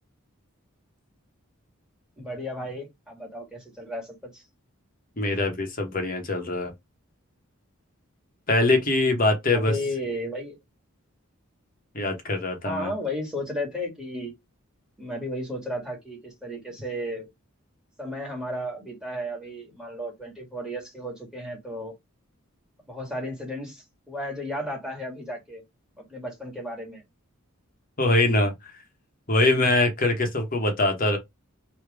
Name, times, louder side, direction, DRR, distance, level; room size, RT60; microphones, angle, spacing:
voice 1, 2.2-4.4 9.5-10.6 12.6-14.3 15.0-17.3 18.0-21.9 22.9-25.6 25.9-27.0, left 1 dB, 5° right, 1.7 m, -34 dB
voice 2, 5.2-6.7 8.5-9.7 11.9-12.9 28.0-28.5 29.3-31.2, left 2 dB, 40° left, 1.1 m, -23 dB
3.3 x 2.9 x 4.7 m
head